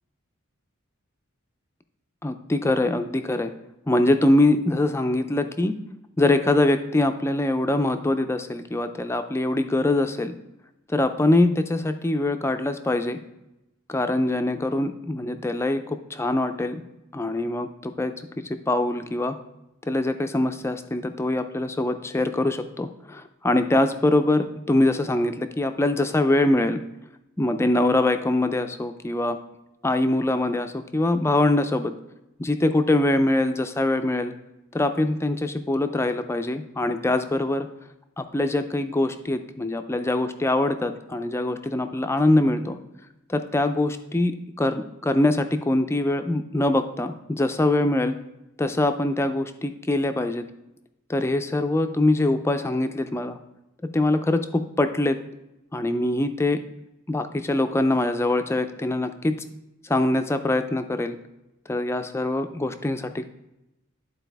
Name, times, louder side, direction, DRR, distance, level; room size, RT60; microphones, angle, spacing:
voice 1, 2.2-3.5 3.9-5.7 6.2-10.3 10.9-13.2 13.9-16.8 17.1-19.4 19.8-26.8 27.4-29.4 29.8-31.9 32.4-34.3 34.7-37.7 38.2-42.8 43.3-44.3 44.6-48.2 48.6-50.4 51.1-53.4 53.9-55.2 55.7-56.6 57.1-59.3 59.8-61.2 61.7-63.2, left 2 dB, 10° left, 8 dB, 0.4 m, -23 dB
11.0 x 4.1 x 3.4 m, 0.92 s
head